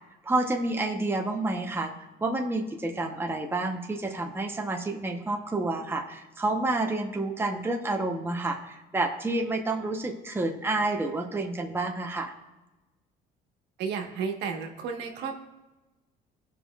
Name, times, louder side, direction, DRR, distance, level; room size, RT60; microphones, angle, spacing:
voice 1, 0.2-1.9 2.2-12.3, right 2 dB, 15° right, 2 dB, 0.9 m, -29 dB
voice 2, 13.8-15.4, right 6 dB, 85° right, 3 dB, 1.3 m, -32 dB
16.5 x 5.6 x 2.4 m, 1.1 s
cardioid pair, 110°, 17 cm